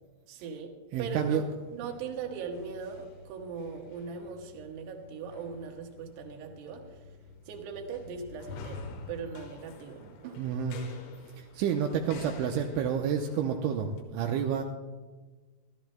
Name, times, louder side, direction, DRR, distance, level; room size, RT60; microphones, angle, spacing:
voice 1, 0.3-0.7 1.0-1.4 1.7-7.0 7.5-10.4, right 5 dB, 65° right, 3 dB, 3.1 m, -40 dB
voice 2, 0.9-1.4 10.0-10.1 10.4-10.8 11.4-14.6, right 7 dB, 85° right, 2 dB, 2.9 m, -29 dB
sound 1, 1.2-14.0, left 4 dB, 85° left, 4.0 m, -49 dB
29.0 x 13.0 x 2.2 m, 1.3 s
omnidirectional pair, 5.8 m